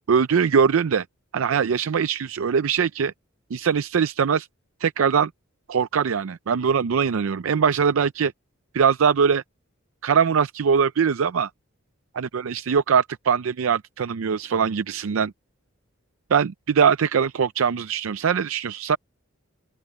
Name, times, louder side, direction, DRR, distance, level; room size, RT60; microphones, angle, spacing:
voice 1, 0.1-1.0 1.3-3.1 3.5-4.5 4.8-5.3 5.7-8.3 8.7-9.4 10.0-11.5 12.2-15.3 16.3-19.0, right 6 dB, 85° right, 0.5 m, -21 dB
open air
head